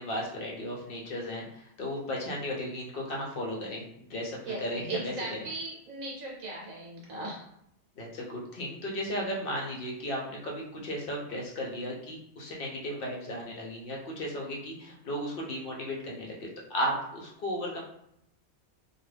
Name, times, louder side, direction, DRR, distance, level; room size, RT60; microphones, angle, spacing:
voice 1, 0.0-5.1 8.0-17.8, equal, 60° left, -2 dB, 0.6 m, -35 dB
voice 2, 4.4-7.4, right 2 dB, 70° right, -3 dB, 1.0 m, -38 dB
2.3 x 2.3 x 3.2 m, 0.76 s
omnidirectional pair, 1.5 m